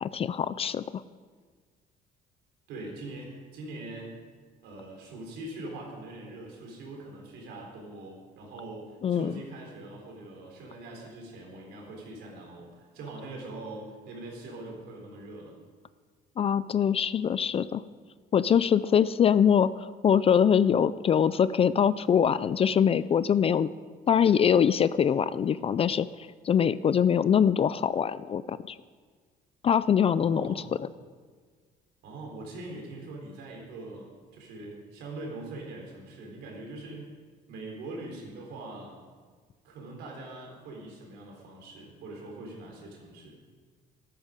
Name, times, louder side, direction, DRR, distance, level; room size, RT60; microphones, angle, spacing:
voice 1, 0.0-1.0 9.0-9.3 16.4-17.8 18.3-23.7 24.1-28.8 29.6-30.9, left 8 dB, 35° left, 16 dB, 0.4 m, -23 dB
voice 2, 2.7-4.2 4.6-15.5 30.1-30.7 32.0-37.1 37.5-39.0 39.6-43.4, right 2 dB, 85° right, 0 dB, 4.0 m, -42 dB
13.0 x 13.0 x 5.2 m, 1.5 s
cardioid pair, 110°, 17 cm